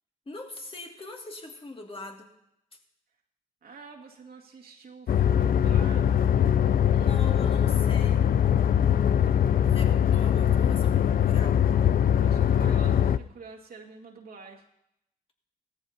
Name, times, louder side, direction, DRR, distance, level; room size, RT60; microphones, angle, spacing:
voice 1, 0.3-2.3 2.7-2.8 6.9-8.3 9.6-11.6, left 2 dB, 30° left, 2 dB, 2.3 m, -42 dB
voice 2, 3.6-6.3 12.2-14.6, right 4 dB, 55° right, -1 dB, 2.1 m, -46 dB
sound 1, 5.1-13.2, left 9 dB, 50° left, 0.5 m, -22 dB
16.5 x 13.5 x 2.9 m, 0.83 s
supercardioid pair, 60°, 19 cm